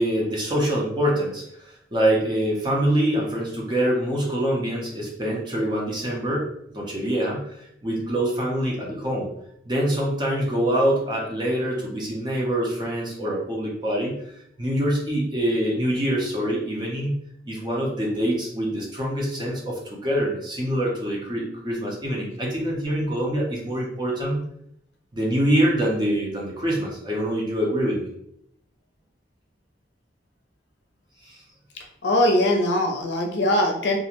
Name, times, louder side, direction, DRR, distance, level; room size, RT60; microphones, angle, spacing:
voice 1, 0.0-6.5 6.7-7.4 7.8-9.3 9.6-14.1 14.6-17.1 17.5-24.4 25.1-28.1 31.2-31.4, right 1 dB, 25° right, -3 dB, 0.6 m, -25 dB
voice 2, 32.0-34.0, left 1 dB, 75° left, 3 dB, 0.5 m, -21 dB
2.4 x 2.1 x 2.9 m, 0.74 s
head